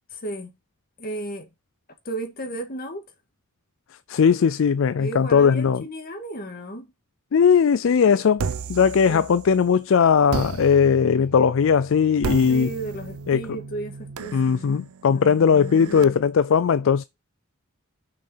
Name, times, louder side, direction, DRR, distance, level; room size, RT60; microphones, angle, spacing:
voice 1, 0.1-0.5 1.0-1.5 2.1-3.0 5.0-6.9 9.1-9.2 12.5-14.5 15.1-16.1, right 2 dB, 45° left, 1.9 m, -34 dB
voice 2, 4.1-5.8 7.3-12.7 13.3-13.6 14.3-17.0, left 6 dB, 60° left, 0.4 m, -19 dB
sound 1, 8.4-9.7 10.3-16.0, right 5 dB, 85° right, 0.5 m, -34 dB
6.5 x 5.6 x 5.6 m
head